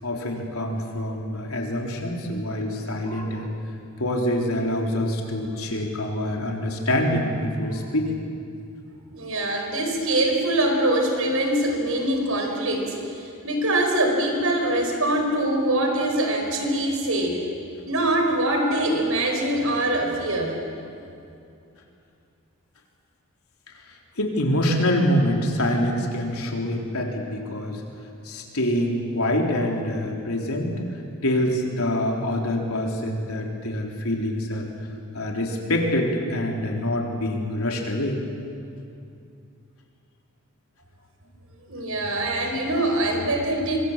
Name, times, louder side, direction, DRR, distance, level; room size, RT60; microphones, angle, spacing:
voice 1, 0.0-3.5 4.0-8.2 24.2-27.8 28.2-30.8 31.2-34.7 35.1-38.2, left 1 dB, 85° left, 1 dB, 3.8 m, -25 dB
voice 2, 9.1-17.4 17.9-20.6 41.7-43.8, right 1 dB, 75° right, 3 dB, 4.7 m, -23 dB
25.0 x 25.0 x 7.5 m, 2.5 s
head